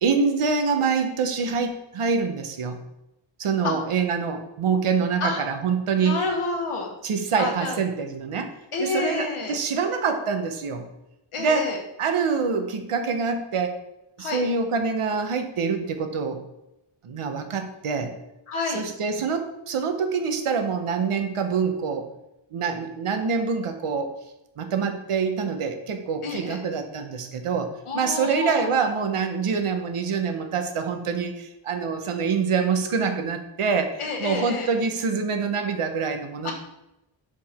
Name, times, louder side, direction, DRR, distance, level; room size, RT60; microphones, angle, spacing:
voice 1, 0.0-2.8 3.4-6.2 7.0-8.5 8.8-10.8 11.4-11.7 12.0-13.8 14.2-16.4 17.0-18.1 18.7-22.1 22.5-24.2 24.6-36.5, right 5 dB, 80° right, 6 dB, 0.9 m, -25 dB
voice 2, 6.0-6.9 7.4-7.8 8.7-9.6 11.3-11.8 14.2-14.4 18.5-18.8 26.2-26.6 27.9-28.7 34.0-34.7 36.4-36.5, left 3 dB, 80° left, 2 dB, 1.4 m, -29 dB
6.1 x 4.8 x 4.3 m, 0.90 s
wide cardioid pair, 140°, 50 cm